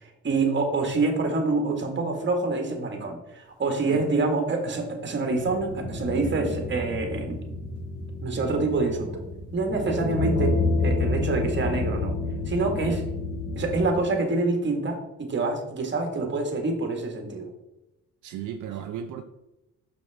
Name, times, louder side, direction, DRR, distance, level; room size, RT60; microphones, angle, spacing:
voice 1, 0.0-7.4 8.2-9.2 9.5-12.1 12.5-13.0 13.6-17.5, right 3 dB, 40° right, 3 dB, 1.7 m, -26 dB
sound 1, 5.3-13.8, left 2 dB, 50° left, 2.7 m, -29 dB
voice 2, 18.2-19.2, right 9 dB, 75° right, 6 dB, 0.6 m, -35 dB
6.4 x 6.2 x 3.5 m, 0.95 s
cardioid pair, 90°, 30 cm